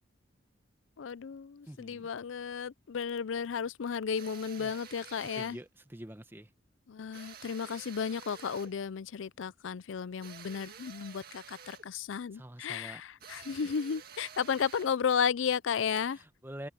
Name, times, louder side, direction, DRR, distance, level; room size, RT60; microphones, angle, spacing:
voice 1, 1.0-5.6 6.9-16.2, left 6 dB, 85° left, 0.5 m, -33 dB
voice 2, 1.7-2.1 4.6-4.8 5.3-6.5 12.3-13.0 16.1-16.7, right 1 dB, 10° right, 1.0 m, -46 dB
sound 1, 4.1-5.6 7.1-8.8 10.2-11.9 13.2-15.0, right 7 dB, 50° right, 1.9 m, -50 dB
open air
head